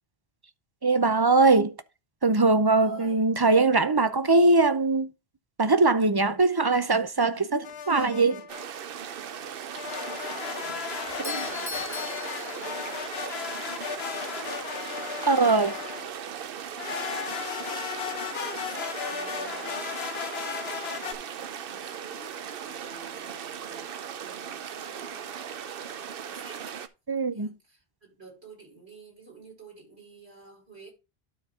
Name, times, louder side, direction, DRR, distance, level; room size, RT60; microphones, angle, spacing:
voice 1, 0.8-1.7 2.2-5.1 5.6-8.4 11.2-11.4 15.2-15.8 27.1-27.5, right 3 dB, 30° right, 0.5 m, -21 dB
voice 2, 2.8-3.3 9.9-14.6 15.2-16.4 16.7-26.8 27.3-30.9, right 3 dB, 80° right, 6.1 m, -50 dB
sound 1, 7.6-8.6 9.7-16.1 16.8-21.1, left 7 dB, 75° left, 1.1 m, -35 dB
sound 2, 8.5-26.9, right 8 dB, 65° right, 0.9 m, -38 dB
Doorbell, 11.0-13.2, left 4 dB, 10° left, 1.4 m, -39 dB
12.5 x 4.2 x 3.6 m
omnidirectional pair, 1.1 m